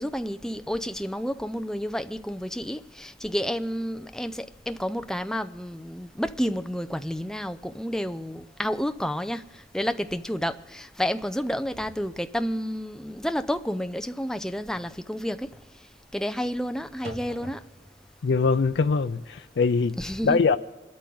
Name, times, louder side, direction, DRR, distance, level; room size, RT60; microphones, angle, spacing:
voice 1, 0.0-15.5 16.1-17.6 20.0-20.4, equal, 5° left, 0.5 m, -30 dB
sound 1, 9.6-9.8 10.2-10.5 10.8-18.1, right 1 dB, 65° right, 1.9 m, -48 dB
voice 2, 18.2-20.0 20.2-20.6, left 4 dB, 85° left, 0.5 m, -22 dB
26.0 x 13.0 x 3.9 m
head